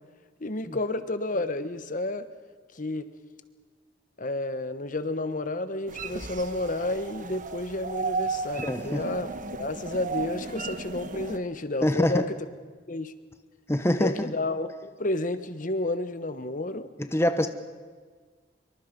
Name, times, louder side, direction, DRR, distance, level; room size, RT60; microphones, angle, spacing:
voice 1, 0.4-2.3 2.7-3.1 4.2-12.3 12.9-13.1 14.0-16.9 17.4-17.5, left 2 dB, 50° left, 11 dB, 1.2 m, -31 dB
sound 1, 5.9-11.4, right 4 dB, 50° right, 1.3 m, -34 dB
voice 2, 8.6-9.0 11.8-12.2 13.7-14.3 17.0-17.5, left 1 dB, 15° left, 8 dB, 1.0 m, -25 dB
26.0 x 24.0 x 5.3 m, 1.5 s
head